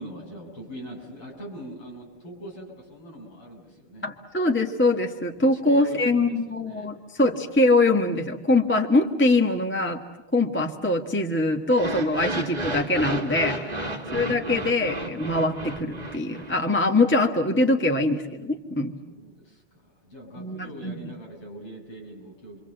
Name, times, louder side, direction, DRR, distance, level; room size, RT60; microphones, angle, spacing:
voice 1, 0.0-4.1 5.4-6.9 19.0-22.6, right 1 dB, 80° left, -1 dB, 7.8 m, -42 dB
voice 2, 4.0-10.0 10.3-13.9 14.1-18.9 20.4-21.0, left 2 dB, 5° left, 3 dB, 1.0 m, -23 dB
sound 1, 11.7-16.8, right 1 dB, 20° right, 1.9 m, -32 dB
29.5 x 24.0 x 7.8 m, 1.0 s
omnidirectional pair, 2.4 m